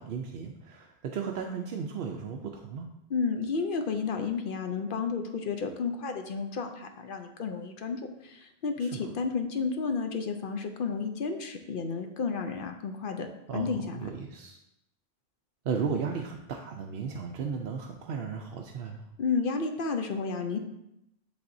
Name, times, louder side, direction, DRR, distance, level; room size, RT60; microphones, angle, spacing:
voice 1, 0.0-2.9 8.8-9.1 13.5-14.6 15.6-19.1, right 6 dB, 70° right, 2 dB, 0.7 m, -35 dB
voice 2, 3.1-13.3 13.5-14.0 19.2-20.6, left 5 dB, 60° left, 5 dB, 0.7 m, -32 dB
10.5 x 3.5 x 2.6 m, 0.84 s
omnidirectional pair, 1.1 m